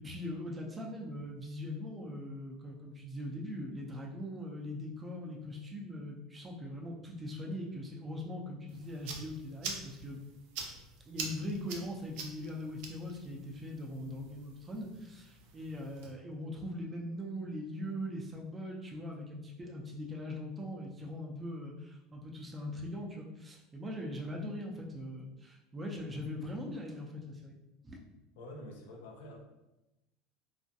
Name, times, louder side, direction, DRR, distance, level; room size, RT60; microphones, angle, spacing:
voice 1, 0.0-10.2 11.1-27.5 27.8-28.0, left 1 dB, 20° right, -1 dB, 0.5 m, -41 dB
sound 1, 8.7-16.1, right 4 dB, 75° right, 0.4 m, -46 dB
voice 2, 28.4-29.4, left 1 dB, 85° left, 1 dB, 0.5 m, -47 dB
2.4 x 2.2 x 2.7 m, 0.96 s
supercardioid pair, 105°, 0 cm